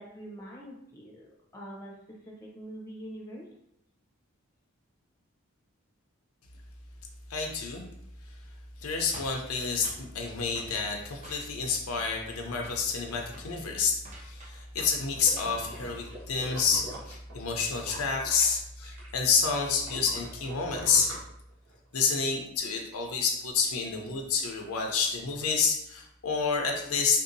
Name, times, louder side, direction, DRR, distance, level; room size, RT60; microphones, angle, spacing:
voice 1, 0.0-3.4, right 1 dB, 15° left, -3 dB, 0.7 m, -44 dB
voice 2, 7.3-7.8 8.8-21.1 21.9-27.2, left 5 dB, 85° left, 2 dB, 0.6 m, -29 dB
sound 1, 9.1-10.1 10.5-10.8 11.2-11.7 12.0-12.4 12.6-12.9 13.3-13.5 14.0-15.1 15.3-15.7, right 1 dB, 35° right, 0.6 m, -48 dB
sound 2, 15.0-19.1 19.4-21.9 22.4-22.5, right 1 dB, 80° right, 1.2 m, -44 dB
3.6 x 2.7 x 2.6 m, 0.76 s
head